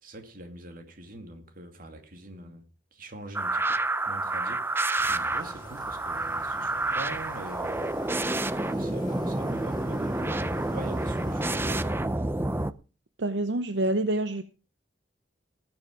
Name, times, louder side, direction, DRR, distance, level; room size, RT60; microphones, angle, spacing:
voice 1, 0.0-2.6 2.9-8.3 8.6-12.2, right 1 dB, 50° right, 2.3 m, -43 dB
sound 1, 3.3-12.7, right 2 dB, 10° right, 0.5 m, -29 dB
sound 2, 5.0-11.5, left 1 dB, 25° left, 3.3 m, -46 dB
voice 2, 13.2-14.4, right 1 dB, 75° right, 0.8 m, -27 dB
19.0 x 7.1 x 4.9 m
head